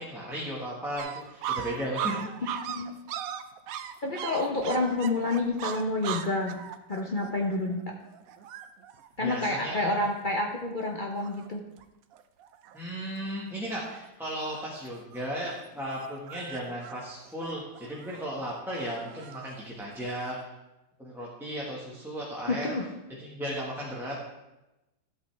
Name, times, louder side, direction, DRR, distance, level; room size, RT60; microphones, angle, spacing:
voice 1, 0.0-2.5 9.2-10.0 12.7-20.4 21.0-22.7 23.2-24.2, equal, ahead, -6 dB, 1.3 m, -35 dB
young leonbergs, 1.0-10.4 10.9-11.0 11.2-11.8 12.1-12.8 13.2-13.6 13.9-20.4, right 9 dB, 85° right, 0.7 m, -39 dB
voice 2, 2.4-2.9 4.0-6.6 6.9-7.9 9.2-11.6 22.5-22.9, left 2 dB, 65° left, 0 dB, 0.5 m, -29 dB
13.0 x 8.1 x 3.4 m, 0.97 s
omnidirectional pair, 2.2 m